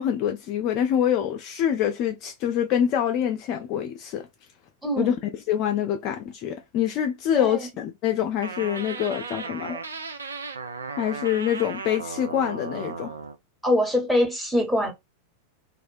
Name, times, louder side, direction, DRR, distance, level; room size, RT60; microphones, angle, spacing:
voice 1, 0.0-4.3 5.0-5.2 5.5-9.8 11.0-13.1, left 10 dB, 40° left, 0.4 m, -25 dB
sound 1, 8.4-13.4, right 4 dB, 75° right, 0.4 m, -35 dB
voice 2, 13.6-14.9, left 1 dB, ahead, 0.9 m, -23 dB
2.3 x 2.1 x 2.5 m
figure-of-eight pair, 90°, 0 cm